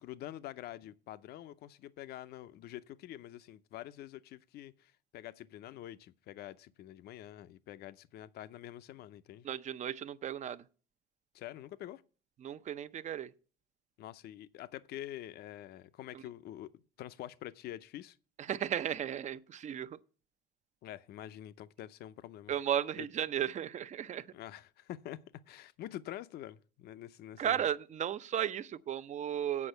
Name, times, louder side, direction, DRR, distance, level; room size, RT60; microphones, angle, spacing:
voice 1, 0.0-9.5 11.3-12.0 14.0-18.2 20.8-22.5 23.0-23.1 24.3-25.2 25.5-27.6, left 13 dB, 70° left, 0.6 m, -46 dB
voice 2, 9.4-10.6 12.4-13.3 16.1-16.2 18.4-20.0 22.5-24.3 27.4-29.7, right 10 dB, 45° right, 0.6 m, -35 dB
8.5 x 5.3 x 7.8 m
cardioid pair, 110°, 17 cm